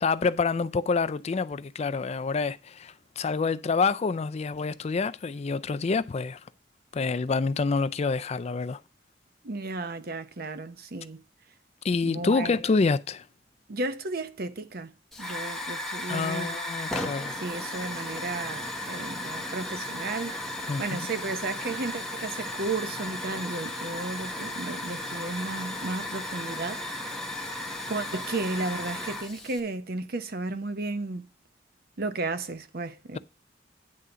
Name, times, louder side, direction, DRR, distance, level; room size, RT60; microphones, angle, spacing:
voice 1, 0.0-6.4 6.9-8.8 11.8-13.2 16.1-17.3 20.7-20.8, left 4 dB, 35° left, 0.4 m, -27 dB
voice 2, 9.4-11.2 12.0-12.6 13.7-14.9 15.2-16.6 17.4-20.4 20.8-26.8 27.9-31.2 32.0-33.2, right 3 dB, 55° right, 0.8 m, -33 dB
Hiss / Fire, 15.1-29.6, left 1 dB, ahead, 1.3 m, -35 dB
9.7 x 3.7 x 6.7 m
head